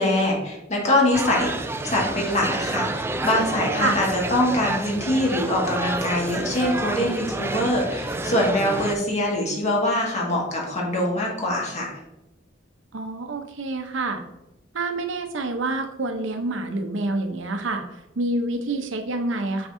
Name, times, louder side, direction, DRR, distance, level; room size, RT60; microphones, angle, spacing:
voice 1, 0.0-1.5 1.8-11.9, left 1 dB, 40° left, -2 dB, 1.8 m, -23 dB
sound 1, 1.1-8.9, right 2 dB, 15° right, 0.3 m, -29 dB
voice 2, 12.9-14.2 14.7-17.8 18.2-19.7, right 2 dB, 85° right, 6 dB, 0.8 m, -27 dB
6.2 x 6.0 x 2.6 m, 0.93 s
head